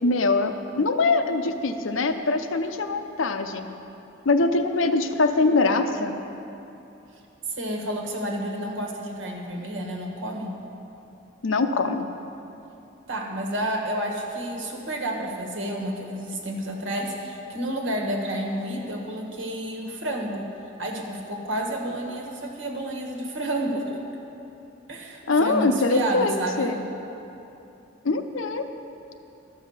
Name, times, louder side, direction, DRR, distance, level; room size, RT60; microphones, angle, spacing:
voice 1, 0.0-3.7 4.2-6.1 11.4-12.1 25.3-26.8 28.0-28.6, left 3 dB, 90° left, 7 dB, 0.7 m, -23 dB
voice 2, 7.5-10.5 13.1-20.5 20.8-24.0 24.9-26.7, right 1 dB, 75° right, 0 dB, 1.5 m, -30 dB
13.0 x 5.6 x 7.2 m, 2.9 s
head